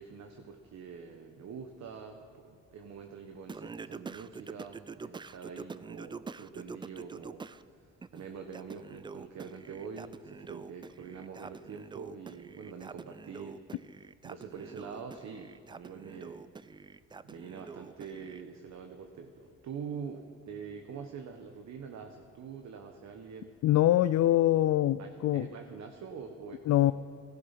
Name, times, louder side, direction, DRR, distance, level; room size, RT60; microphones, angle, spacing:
voice 1, 0.0-13.6 14.2-16.4 17.2-23.5 25.0-26.9, right 6 dB, 65° right, 5 dB, 1.2 m, -45 dB
Singing, 3.5-7.6 8.0-18.4, right 4 dB, 15° right, 0.3 m, -46 dB
voice 2, 23.6-25.5 26.7-26.9, left 13 dB, 60° left, 14 dB, 0.4 m, -24 dB
16.0 x 14.0 x 5.8 m, 2.2 s
cardioid pair, 90°, 30 cm